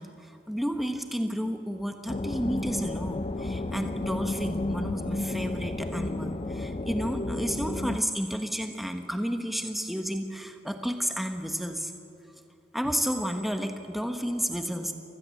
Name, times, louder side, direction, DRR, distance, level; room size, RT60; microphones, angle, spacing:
voice 1, 0.0-11.9 12.7-14.9, equal, ahead, 5 dB, 1.3 m, -31 dB
sound 1, 2.1-8.0, left 2 dB, 35° left, 0.5 m, -32 dB
29.0 x 13.5 x 7.8 m, 2.8 s
head